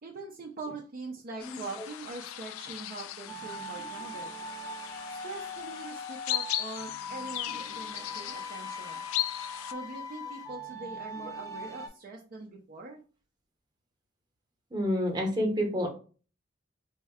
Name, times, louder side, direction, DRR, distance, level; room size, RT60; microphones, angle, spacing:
voice 1, 0.0-4.3 5.1-9.0 9.6-13.0, right 3 dB, 45° right, -1 dB, 0.5 m, -42 dB
sound 1, 1.4-9.7, left 13 dB, 90° left, 0.3 m, -38 dB
sound 2, 3.3-11.9, left 1 dB, 15° left, 0.6 m, -41 dB
voice 2, 14.7-15.9, equal, 20° right, 1 dB, 0.9 m, -28 dB
3.6 x 2.1 x 3.5 m, 0.37 s
head